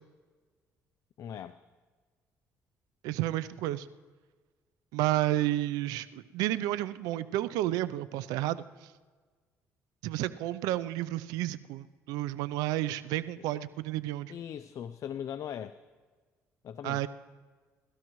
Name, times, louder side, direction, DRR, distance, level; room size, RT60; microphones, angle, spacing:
voice 1, 1.2-1.6 14.3-15.8 16.6-17.1, left 9 dB, 60° left, 12 dB, 0.5 m, -39 dB
voice 2, 3.0-3.9 4.9-8.9 10.0-14.3 16.8-17.1, right 15 dB, 90° right, 16 dB, 0.5 m, -31 dB
27.5 x 13.0 x 3.1 m, 1.4 s
supercardioid pair, 80°, 6 cm